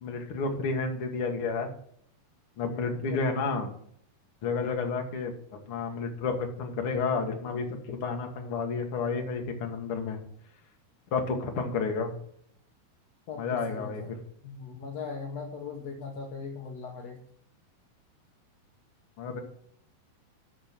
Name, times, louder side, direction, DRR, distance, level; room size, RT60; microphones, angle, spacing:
voice 1, 0.0-1.7 2.6-3.7 4.4-5.3 5.7-10.2 11.1-12.1 13.4-14.2 19.2-19.4, left 4 dB, 55° left, 3 dB, 1.6 m, -31 dB
voice 2, 13.3-14.2 14.4-17.2, left 5 dB, 70° left, 1 dB, 1.5 m, -39 dB
12.5 x 5.1 x 5.9 m, 0.68 s
omnidirectional pair, 4.6 m